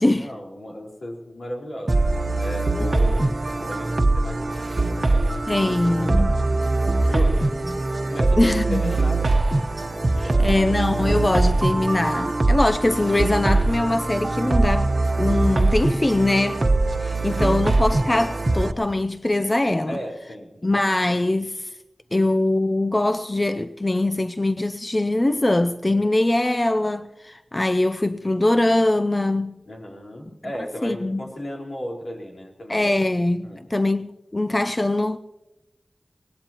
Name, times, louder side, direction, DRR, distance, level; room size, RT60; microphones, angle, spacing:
voice 1, 0.0-2.0 2.4-4.5 4.8-5.6 5.9-6.5 6.7-7.5 8.1-9.5 9.9-10.6 17.0-17.5 19.9-20.7 29.7-33.0 33.4-33.6, equal, 70° left, 4.4 m, -35 dB
sound 1, 1.9-18.7, right 2 dB, 50° right, 1.2 m, -22 dB
voice 2, 5.5-6.3 8.4-8.9 10.2-16.7 17.0-20.0 20.6-21.7 22.1-29.5 30.8-31.2 32.7-35.2, left 1 dB, 30° left, 0.6 m, -22 dB
24.0 x 19.5 x 3.0 m
wide cardioid pair, 70°, 0 cm